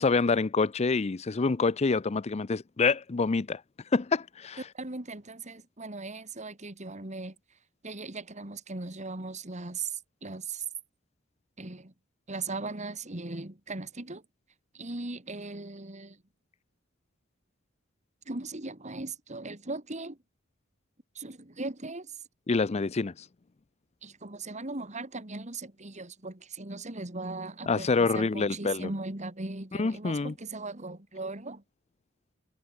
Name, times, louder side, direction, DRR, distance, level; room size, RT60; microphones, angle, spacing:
voice 1, 0.0-3.6 3.9-4.6 22.5-23.1 27.7-28.9 29.8-30.3, left 4 dB, 35° left, 0.5 m, -26 dB
voice 2, 4.7-7.3 7.8-10.6 11.6-11.9 12.3-14.2 14.7-16.2 18.3-20.2 21.1-22.2 24.0-31.6, right 3 dB, 35° right, 2.6 m, -38 dB
head